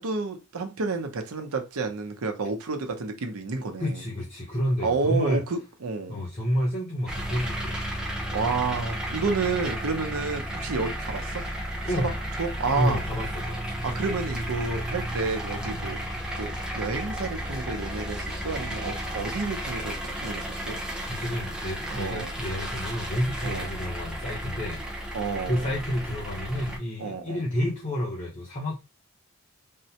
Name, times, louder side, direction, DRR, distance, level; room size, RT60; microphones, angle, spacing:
voice 1, 0.0-4.0 4.8-6.2 8.3-11.4 12.0-12.1 12.4-13.0 13.8-16.0 16.4-20.8 21.9-22.3 23.4-23.7 25.1-25.7 27.0-27.4, right 4 dB, 80° right, 0.6 m, -30 dB
voice 2, 3.8-5.4 6.1-8.0 9.9-10.1 11.8-12.1 12.7-13.7 15.6-15.8 21.0-25.2 25.5-28.8, equal, 30° left, 0.8 m, -30 dB
sound 1, 7.1-26.8, right 1 dB, 5° right, 0.6 m, -33 dB
3.6 x 2.1 x 2.8 m
head